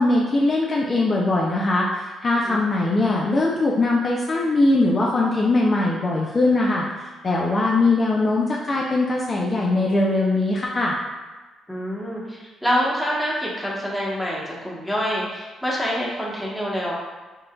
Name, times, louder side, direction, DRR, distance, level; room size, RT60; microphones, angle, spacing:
voice 1, 0.0-10.9, left 2 dB, 35° left, -3 dB, 0.4 m, -21 dB
voice 2, 11.7-16.9, equal, ahead, -5 dB, 1.1 m, -26 dB
5.4 x 2.5 x 2.3 m, 1.3 s
cardioid pair, 90°, 0 cm